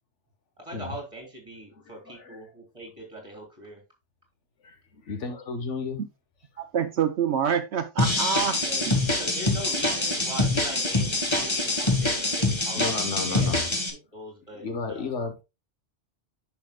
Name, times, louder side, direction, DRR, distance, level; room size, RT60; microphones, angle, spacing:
voice 1, 0.6-3.8 8.6-13.5 13.9-15.1, right 1 dB, 25° right, 3.5 m, -41 dB
voice 2, 1.7-2.4 4.6-6.0 6.5-6.6 12.8-13.7 14.5-15.3, left 4 dB, 80° left, 1.6 m, -33 dB
voice 3, 6.6-8.6, right 7 dB, 70° right, 1.0 m, -26 dB
sound 1, 8.0-13.9, left 2 dB, 25° left, 1.5 m, -25 dB
10.5 x 5.8 x 2.2 m
omnidirectional pair, 1.2 m